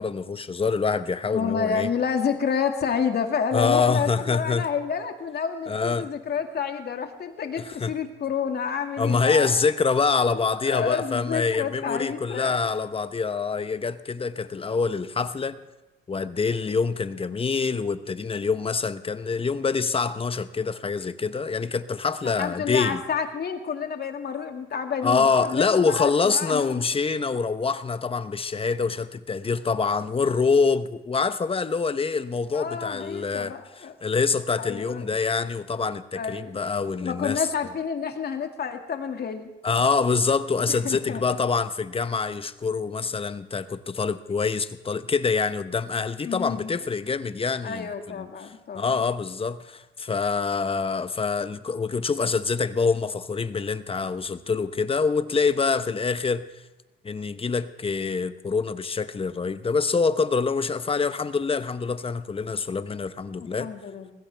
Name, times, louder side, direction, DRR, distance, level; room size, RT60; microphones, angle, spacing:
voice 1, 0.0-1.9 3.5-4.7 5.7-6.1 7.6-7.9 9.0-15.6 16.1-23.0 25.0-37.4 39.6-56.4 57.0-63.7, left 4 dB, 30° left, 0.9 m, -25 dB
voice 2, 1.3-9.5 10.3-12.6 22.2-26.7 32.5-33.9 34.6-35.0 36.1-36.6 37.0-39.5 40.7-41.4 46.2-46.7 47.6-49.0 63.4-64.1, left 6 dB, 55° left, 2.1 m, -29 dB
20.5 x 16.0 x 3.4 m
cardioid pair, 90°, 20 cm